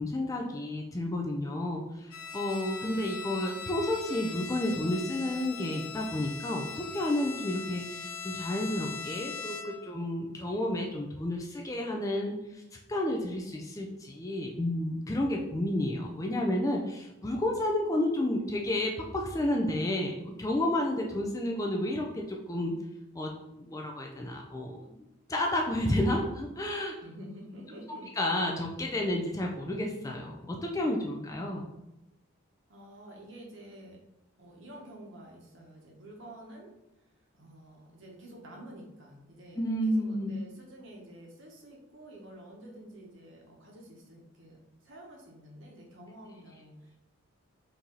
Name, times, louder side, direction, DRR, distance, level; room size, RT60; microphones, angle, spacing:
voice 1, 0.0-12.6 12.9-22.7 23.1-27.0 28.2-31.7 39.6-40.3, left 1 dB, 15° left, 0 dB, 0.3 m, -31 dB
Bowed string instrument, 2.1-9.9, left 6 dB, 75° left, 0.6 m, -40 dB
voice 2, 27.0-28.1 32.7-34.0 34.4-36.7 37.3-44.6 44.8-47.0, right 1 dB, 55° right, -1 dB, 1.0 m, -49 dB
4.5 x 2.7 x 3.8 m, 0.95 s
head